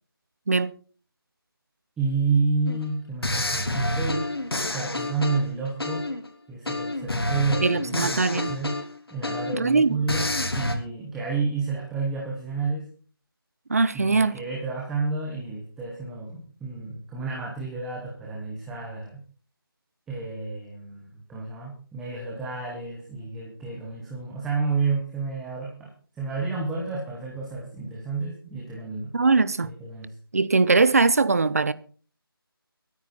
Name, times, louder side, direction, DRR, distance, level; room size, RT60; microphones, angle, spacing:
voice 1, 2.0-4.3 4.7-6.0 6.5-8.7 9.1-10.3 10.5-12.8 13.9-19.2 20.1-29.1 29.6-30.1, right 4 dB, ahead, 0.8 m, -30 dB
sound 1, 2.7-2.8 3.2-6.3 6.7-9.7 10.1-10.8, left 2 dB, 80° left, 3.8 m, -28 dB
voice 2, 7.6-8.5 9.6-10.0 13.7-14.4 29.1-29.7 30.3-31.7, right 4 dB, 40° right, 0.8 m, -21 dB
23.0 x 9.5 x 4.2 m
figure-of-eight pair, 170°, 13 cm